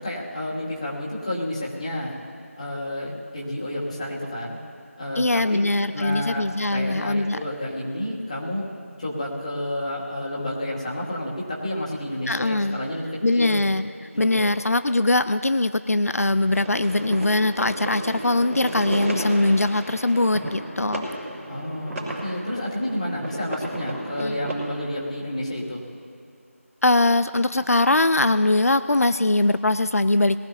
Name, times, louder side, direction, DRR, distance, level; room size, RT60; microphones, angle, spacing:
voice 1, 0.0-2.1 2.5-4.6 4.9-5.6 5.9-8.7 9.0-13.6 14.1-14.6 21.5-25.8, left 1 dB, 30° left, -4 dB, 2.3 m, -30 dB
voice 2, 5.2-7.4 12.3-12.8 13.2-13.9 14.2-21.1 24.2-24.4 26.8-30.4, left 2 dB, 90° left, 13 dB, 0.4 m, -21 dB
sound 1, 16.5-24.6, right 1 dB, 5° right, 1.4 m, -34 dB
21.5 x 14.5 x 2.8 m, 2.5 s
figure-of-eight pair, 170°, 8 cm